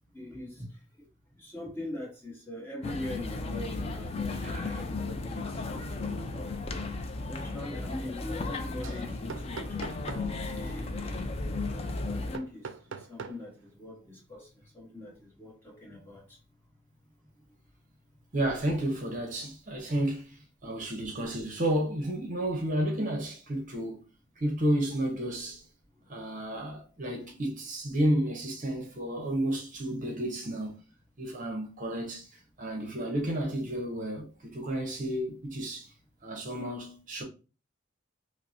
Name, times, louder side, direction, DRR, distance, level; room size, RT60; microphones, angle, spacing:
voice 1, 0.1-0.7 1.4-6.3 7.2-9.6 9.9-12.6 12.9-14.5 14.7-16.2, left 1 dB, 10° left, 1.1 m, -42 dB
sound 1, 2.8-12.4, left 3 dB, 30° left, 0.3 m, -35 dB
sound 2, 3.2-3.5 3.9-4.2 4.6-13.7, right 5 dB, 70° right, 0.4 m, -47 dB
voice 2, 4.4-4.8 6.3-6.5 18.3-24.0 24.4-25.6 26.1-30.8 31.2-32.3 32.6-35.9 36.2-37.2, right 1 dB, 40° right, 0.7 m, -31 dB
5.2 x 2.0 x 2.7 m
head